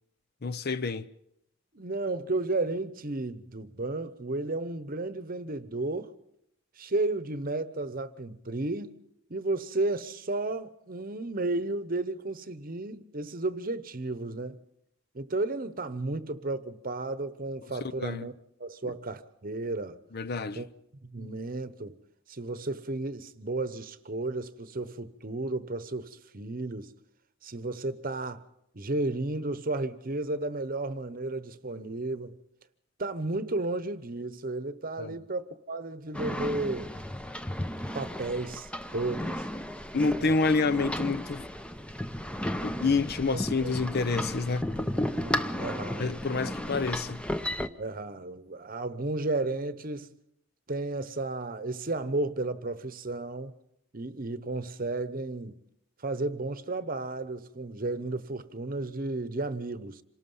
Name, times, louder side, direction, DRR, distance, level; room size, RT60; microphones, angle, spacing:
voice 1, 0.4-1.1 18.0-18.3 20.1-20.6 35.0-35.2 39.9-41.5 42.6-44.8 46.0-47.2, left 4 dB, 50° left, 0.7 m, -28 dB
voice 2, 1.7-6.1 6.8-9.0 9.3-14.6 15.1-18.3 18.6-20.0 20.5-20.7 21.0-22.0 22.3-26.9 27.4-28.4 28.7-32.4 33.0-36.9 37.9-39.5 40.1-40.4 43.3-43.8 45.2-46.1 47.8-50.1 50.7-53.5 53.9-55.6 56.0-60.0, right 2 dB, 45° right, 1.0 m, -33 dB
sound 1, 36.1-47.7, left 1 dB, 5° left, 0.7 m, -34 dB
27.0 x 18.5 x 5.6 m
head